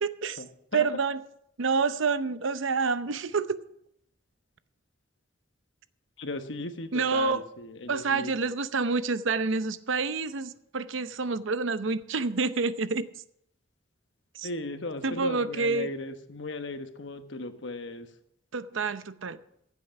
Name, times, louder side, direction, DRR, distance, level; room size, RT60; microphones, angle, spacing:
voice 1, 0.0-0.4 0.7-1.2 1.6-3.6 6.9-7.4 7.9-13.1 14.3-14.5 15.0-15.9 18.5-19.4, right 4 dB, 75° right, 13 dB, 0.7 m, -28 dB
voice 2, 6.2-8.4 14.4-18.1, left 2 dB, 65° left, 8 dB, 1.2 m, -37 dB
15.5 x 8.3 x 5.9 m, 0.73 s
head